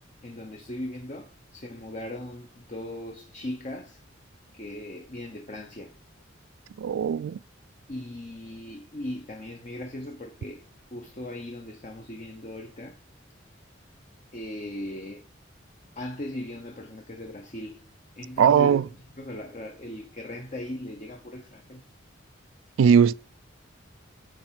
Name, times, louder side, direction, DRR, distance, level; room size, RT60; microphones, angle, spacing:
voice 1, 0.2-4.0 4.5-5.9 7.9-10.6 10.9-13.0 14.3-15.3 16.0-17.8 18.2-18.8 19.2-21.8, left 1 dB, 40° left, 0.8 m, -38 dB
voice 2, 6.8-7.4 18.4-18.8 22.8-23.1, right 7 dB, 80° right, 0.3 m, -19 dB
8.6 x 3.3 x 5.8 m
head